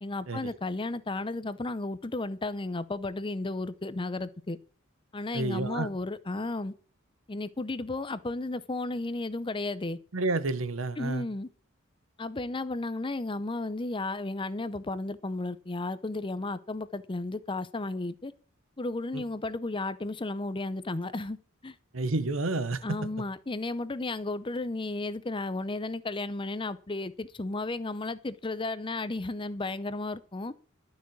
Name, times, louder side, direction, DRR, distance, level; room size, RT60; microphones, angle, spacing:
voice 1, 0.0-4.6 5.1-6.7 7.3-10.0 11.0-11.5 12.2-18.3 18.8-21.4 21.6-21.7 22.8-30.5, left 2 dB, 25° left, 0.6 m, -33 dB
voice 2, 5.3-5.9 10.1-11.3 19.1-19.2 21.9-23.0, right 2 dB, 90° right, 1.1 m, -30 dB
12.0 x 6.3 x 8.3 m
head